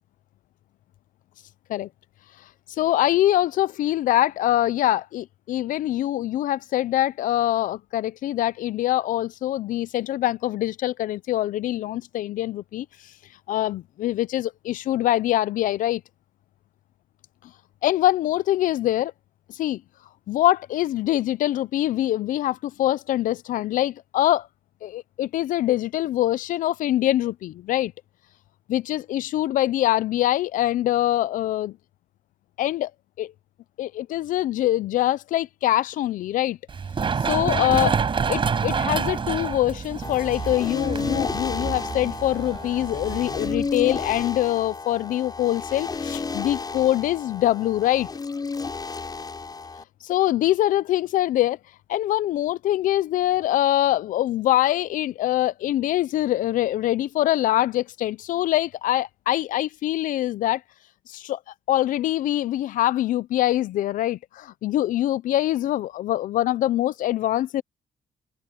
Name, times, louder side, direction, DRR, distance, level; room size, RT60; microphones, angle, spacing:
voice 1, 2.8-12.9 13.5-16.0 17.8-19.1 19.6-19.8 20.3-24.5 24.8-27.9 28.7-31.7 32.6-32.9 33.2-33.3 33.8-36.6 37.3-37.9 38.3-48.1 50.0-51.6 51.9-60.6 61.1-61.4 61.7-67.6, left 14 dB, 75° left, 0.6 m, -24 dB
Run, 36.7-44.2, right 6 dB, 40° right, 4.9 m, -28 dB
sound 1, 40.0-49.8, left 4 dB, 30° left, 7.6 m, -32 dB
cardioid pair, 110°, 14 cm